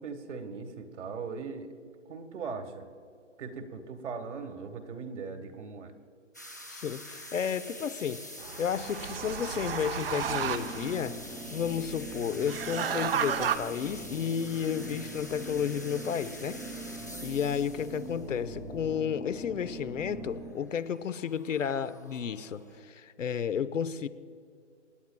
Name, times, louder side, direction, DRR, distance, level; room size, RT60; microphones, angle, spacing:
voice 1, 0.0-1.7 2.0-2.9 3.4-5.9, right 5 dB, 65° right, 7 dB, 1.6 m, -39 dB
sound 1, 6.3-22.8, equal, 15° left, 0.4 m, -46 dB
voice 2, 6.7-8.3 8.6-11.2 11.5-16.6 17.2-24.1, left 8 dB, 80° left, 13 dB, 0.9 m, -32 dB
sound 2, 8.4-11.0 12.4-13.6, right 8 dB, 50° right, 0.7 m, -32 dB
sound 3, 10.2-20.5, right 1 dB, ahead, 0.8 m, -43 dB
27.5 x 9.5 x 2.3 m, 2.3 s
hypercardioid pair, 160°, 37 cm